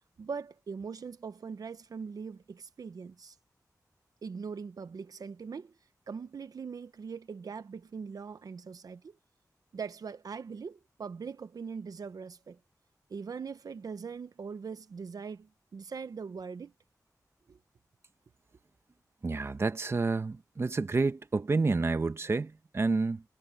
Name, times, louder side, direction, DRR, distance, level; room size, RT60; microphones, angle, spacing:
voice 1, 0.2-3.4 4.2-5.7 6.1-9.2 9.7-12.6 13.1-16.7 17.5-17.6, right 5 dB, 75° right, 0.9 m, -41 dB
voice 2, 19.2-23.2, right 3 dB, 40° right, 1.0 m, -29 dB
wide cardioid pair, 95°, 6 cm